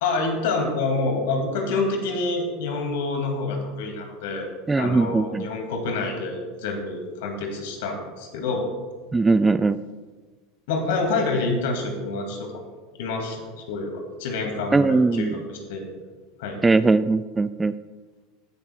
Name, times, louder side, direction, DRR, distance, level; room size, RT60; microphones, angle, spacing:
voice 1, 0.0-4.5 4.8-8.7 10.7-12.5 13.0-15.8 16.4-16.6, left 3 dB, 65° left, 3 dB, 2.5 m, -27 dB
voice 2, 4.7-5.4 9.1-9.8 14.7-15.3 16.6-17.7, right 3 dB, 15° right, 14 dB, 0.4 m, -20 dB
15.5 x 11.0 x 2.4 m, 1.3 s
hypercardioid pair, 80°, 0 cm